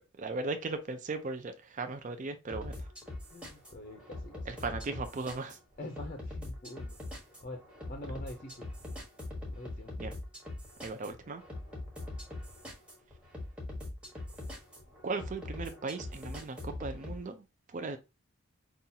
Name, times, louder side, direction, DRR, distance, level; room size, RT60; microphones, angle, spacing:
voice 1, 0.2-2.9 4.5-5.6 10.0-10.1 10.8-11.4 15.0-18.0, right 3 dB, 35° right, 0.4 m, -37 dB
sound 1, 2.5-17.2, left 2 dB, 5° right, 1.1 m, -42 dB
voice 2, 3.3-4.5 5.8-7.0 7.4-7.6 7.9-8.6 9.5-9.9 12.0-12.1 14.3-14.9, left 1 dB, 40° left, 0.5 m, -45 dB
5.4 x 2.4 x 2.7 m
head